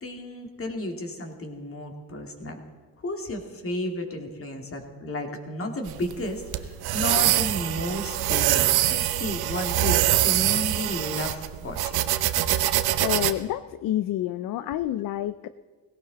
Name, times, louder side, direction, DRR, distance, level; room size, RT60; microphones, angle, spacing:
voice 1, 0.0-2.6 3.0-12.0, left 1 dB, 35° left, 3 dB, 2.4 m, -33 dB
sound 1, 5.9-13.3, right 13 dB, 65° right, 0.9 m, -24 dB
voice 2, 13.0-15.5, left 13 dB, 55° left, 13 dB, 0.5 m, -28 dB
18.0 x 17.0 x 4.1 m, 1.5 s
cardioid pair, 105°, 40 cm